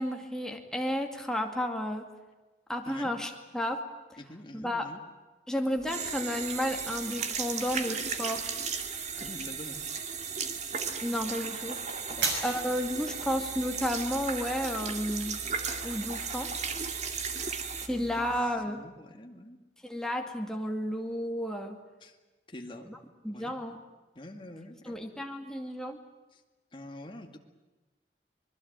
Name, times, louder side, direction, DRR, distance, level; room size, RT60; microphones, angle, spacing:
voice 1, 0.0-2.1 2.7-3.8 4.1-4.2 4.5-4.9 5.5-8.5 11.0-11.8 12.4-15.4 15.8-16.5 17.8-18.9 19.8-21.8 22.9-23.0 23.2-23.8 24.8-26.0, equal, 5° left, 2 dB, 2.3 m, -32 dB
voice 2, 4.2-5.0 9.2-9.9 12.1-12.4 17.9-19.7 22.0-22.2 22.5-22.9 23.3-23.5 24.2-25.0 26.3-26.4 26.7-27.4, left 1 dB, 30° left, 4 dB, 2.2 m, -46 dB
sound 1, 5.8-17.9, right 6 dB, 40° right, 2.2 m, -35 dB
sound 2, 12.1-18.4, right 4 dB, 80° right, 6.0 m, -40 dB
25.0 x 21.0 x 9.0 m, 1.2 s
head